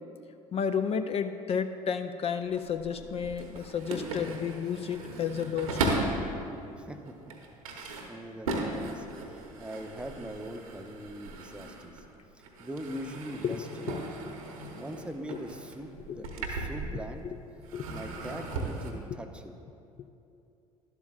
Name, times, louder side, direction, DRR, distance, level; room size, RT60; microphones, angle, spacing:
voice 1, 0.5-6.0 13.4-14.0 14.7-14.8 16.1-16.2 17.2-17.4 17.7-17.9 19.1-19.2, left 7 dB, 35° left, 9 dB, 0.4 m, -32 dB
sound 1, 2.4-6.3 6.9-12.1 12.4-17.3 17.6-18.9, right 2 dB, 80° right, 1.0 m, -37 dB
voice 2, 6.8-7.1 7.7-12.0 12.3-14.0 14.8-17.3 17.9-19.5, equal, 5° right, 6 dB, 0.7 m, -42 dB
12.0 x 11.5 x 2.4 m, 2.7 s
figure-of-eight pair, 60°, 18 cm